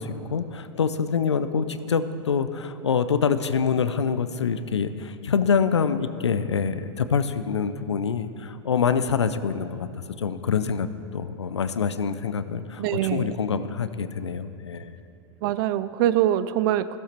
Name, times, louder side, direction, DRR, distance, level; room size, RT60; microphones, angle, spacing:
voice 1, 0.0-9.9 10.2-10.9 11.1-15.0, left 6 dB, 90° left, 13 dB, 0.5 m, -25 dB
voice 2, 12.8-13.4 15.4-17.0, right 12 dB, 55° right, 14 dB, 0.5 m, -24 dB
15.0 x 7.4 x 4.4 m, 2.7 s
hypercardioid pair, 100°, 14 cm